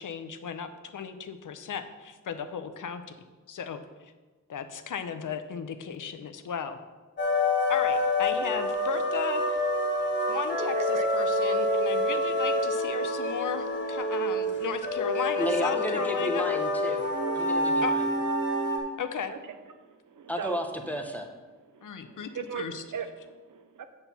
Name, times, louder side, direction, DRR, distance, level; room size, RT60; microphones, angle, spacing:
voice 1, 0.0-4.1 4.5-6.8 7.7-9.6 10.3-16.5 17.8-17.9 19.0-19.3 21.8-22.8, left 7 dB, 80° left, 9 dB, 0.7 m, -35 dB
sound 1, 7.2-18.8, left 1 dB, 35° left, 1.3 m, -27 dB
voice 2, 10.8-11.1 17.5-17.8 18.5-19.0 19.3-19.4 19.8-20.6 21.7-23.8, right 7 dB, 80° right, 9 dB, 0.7 m, -39 dB
voice 3, 15.4-17.0 17.3-18.1 20.3-21.3, equal, 5° left, 3 dB, 0.7 m, -33 dB
8.0 x 4.3 x 6.8 m, 1.3 s
wide cardioid pair, 175°, 31 cm